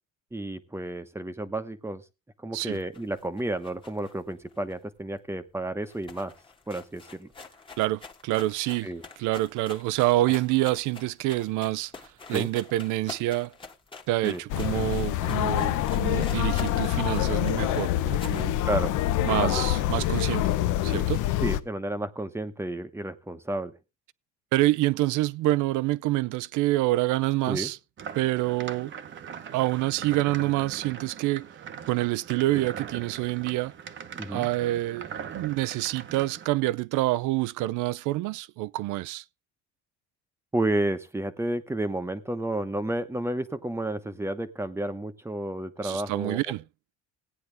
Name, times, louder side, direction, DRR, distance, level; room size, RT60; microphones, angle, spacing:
voice 1, 0.3-2.0 2.4-6.3 6.7-7.3 8.8-9.0 12.3-12.5 14.2-14.4 16.0-16.2 18.7-18.9 19.4-19.6 21.4-23.7 27.5-27.7 28.8-28.9 32.5-32.7 34.1-34.5 40.5-46.4, right 1 dB, 10° right, 1.0 m, -31 dB
sound 1, 2.6-5.3 5.5-5.6 5.8-18.5, left 4 dB, 15° left, 1.4 m, -46 dB
voice 2, 7.8-8.9 9.2-11.9 12.3-13.5 14.1-18.6 19.2-20.5 20.8-21.3 24.5-27.8 28.2-28.9 29.5-31.5 31.9-33.7 34.3-39.2 45.8-46.6, right 17 dB, 70° right, 0.6 m, -27 dB
sound 2, 14.5-21.6, left 13 dB, 70° left, 0.9 m, -26 dB
sound 3, 28.0-36.5, right 7 dB, 35° right, 1.0 m, -41 dB
16.5 x 9.5 x 3.4 m
cardioid pair, 140°, 32 cm